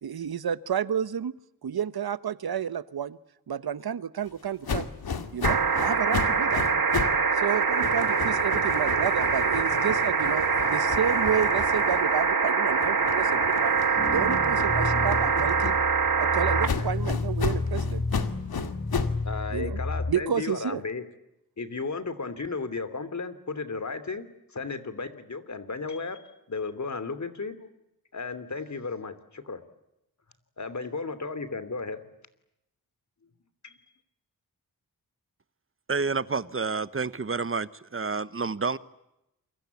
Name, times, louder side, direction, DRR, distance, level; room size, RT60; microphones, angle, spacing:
voice 1, 0.0-1.3 1.6-3.2 3.5-4.9 5.3-6.6 7.3-13.8 14.1-15.8 16.2-18.0 19.5-19.8 20.1-20.8, right 8 dB, 80° right, 15 dB, 1.1 m, -30 dB
sound 1, 4.6-7.2 7.5-12.3 12.7-16.1 16.6-19.2, left 5 dB, 80° left, 2.2 m, -34 dB
sound 2, 5.4-16.7 18.1-18.2, right 5 dB, 65° right, 2.8 m, -24 dB
sound 3, 14.0-20.1, left 3 dB, 25° left, 1.9 m, -31 dB
voice 2, 19.2-21.0 21.6-26.2 26.5-27.7 28.1-29.6 30.6-32.0 33.6-33.8, left 4 dB, 50° left, 12 dB, 3.0 m, -34 dB
voice 3, 35.9-38.8, right 4 dB, 35° right, 15 dB, 1.2 m, -29 dB
28.5 x 24.0 x 8.4 m, 0.86 s
wide cardioid pair, 85°, 37 cm